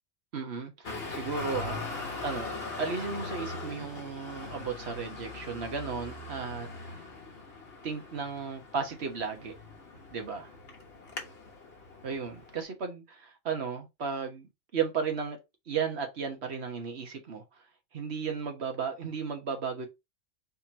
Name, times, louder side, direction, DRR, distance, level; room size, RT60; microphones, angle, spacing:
voice 1, 0.3-6.9 7.8-9.5 10.1-10.5 12.0-15.4 15.7-17.6 17.9-19.9, right 5 dB, 55° right, 1.4 m, -35 dB
Traffic noise roadway noise, 0.8-12.6, left 3 dB, 50° left, 1.5 m, -41 dB
4.3 x 2.9 x 4.0 m
omnidirectional pair, 1.3 m